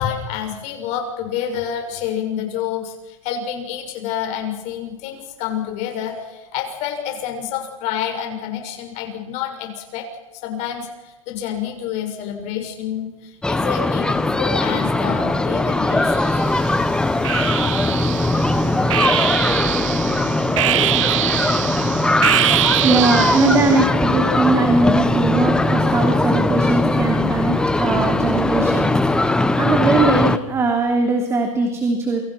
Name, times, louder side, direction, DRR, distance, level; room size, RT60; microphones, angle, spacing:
voice 1, 0.0-10.1 10.3-16.3, left 9 dB, 40° left, 4 dB, 6.5 m, -28 dB
sound 1, 13.4-30.4, left 2 dB, 5° left, 1.1 m, -20 dB
sound 2, 15.9-16.6 17.2-23.9, right 15 dB, 70° right, 0.9 m, -23 dB
sound 3, 16.4-30.7, right 11 dB, 90° right, 5.1 m, -37 dB
voice 2, 22.8-32.2, right 3 dB, 15° right, 4 dB, 3.1 m, -20 dB
28.5 x 24.0 x 6.0 m, 1.1 s
supercardioid pair, 150°, 17 cm